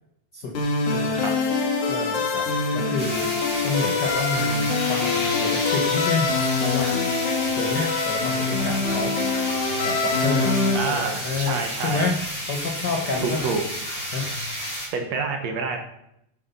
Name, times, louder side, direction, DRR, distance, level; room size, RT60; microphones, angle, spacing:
sound 1, 0.5-10.8, left 4 dB, 75° left, 3.6 m, -24 dB
voice 1, 0.9-1.2 1.9-2.5 2.7-6.3 6.6-7.1 7.5-9.2 9.8-12.1 12.5-13.4 14.1-14.3, left 4 dB, 55° left, 1 dB, 1.1 m, -29 dB
sound 2, 3.0-14.9, equal, 25° left, 3.4 m, -32 dB
voice 2, 10.7-12.0 13.2-13.6 14.9-15.8, right 4 dB, 65° right, 3 dB, 2.6 m, -27 dB
9.6 x 9.2 x 5.6 m, 0.78 s
omnidirectional pair, 3.4 m